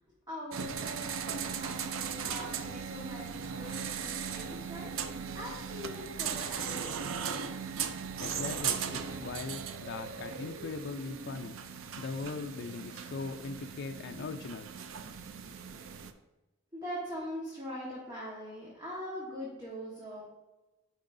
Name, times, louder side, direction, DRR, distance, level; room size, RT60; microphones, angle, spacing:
voice 1, 0.3-7.1 16.7-20.2, equal, 20° right, -6 dB, 1.3 m, -42 dB
sound 1, 0.5-16.1, right 7 dB, 90° right, 0.5 m, -38 dB
voice 2, 8.2-11.5 12.0-14.7, left 4 dB, 60° left, 5 dB, 0.4 m, -40 dB
9.1 x 4.7 x 2.6 m, 1.1 s
head